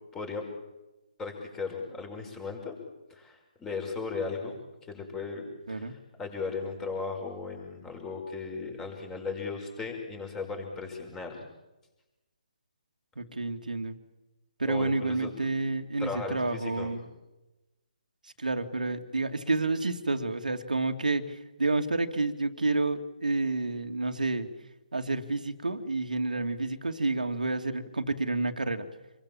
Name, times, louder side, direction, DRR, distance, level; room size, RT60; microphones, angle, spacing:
voice 1, 0.1-0.5 1.2-2.8 3.1-4.6 4.9-5.9 6.2-11.5 14.6-15.3 16.0-16.9, left 4 dB, 10° left, 3 dB, 5.8 m, -36 dB
voice 2, 13.2-13.9 14.6-17.1 18.4-24.5 24.9-28.9, right 3 dB, 85° right, 5 dB, 2.6 m, -29 dB
28.0 x 22.5 x 7.3 m, 1.0 s
figure-of-eight pair, 150°, 4 cm